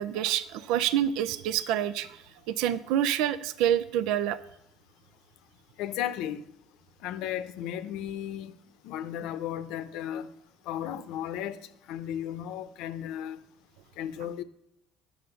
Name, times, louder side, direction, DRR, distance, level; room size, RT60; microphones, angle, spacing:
voice 1, 0.0-4.4, right 11 dB, 75° right, 0.5 m, -27 dB
voice 2, 5.8-6.4 7.0-8.5 8.8-10.3 10.7-13.4 14.0-14.4, left 10 dB, 75° left, 0.7 m, -35 dB
10.0 x 6.4 x 6.9 m
supercardioid pair, 85°, 0 cm